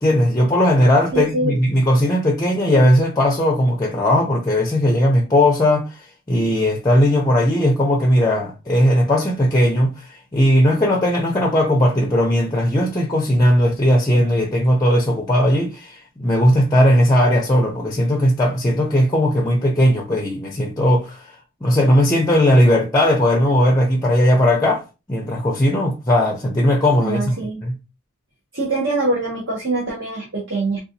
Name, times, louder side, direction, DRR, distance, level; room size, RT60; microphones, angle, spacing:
voice 1, 0.0-6.0 6.3-21.2 21.6-27.7, equal, 15° left, 0.5 m, -17 dB
voice 2, 1.1-1.6 27.0-27.6 28.5-30.8, right 2 dB, 55° right, 0.9 m, -23 dB
3.9 x 2.4 x 2.7 m
head